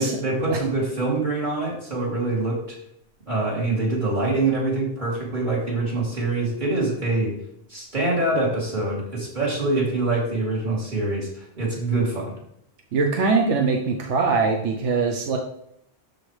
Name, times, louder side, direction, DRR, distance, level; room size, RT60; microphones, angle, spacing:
voice 1, 0.0-2.8 3.3-7.3 7.7-12.3, right 2 dB, 40° right, -5 dB, 3.1 m, -25 dB
voice 2, 12.9-15.4, right 4 dB, 85° right, 3 dB, 1.2 m, -22 dB
12.5 x 4.9 x 3.3 m, 0.76 s
omnidirectional pair, 1.2 m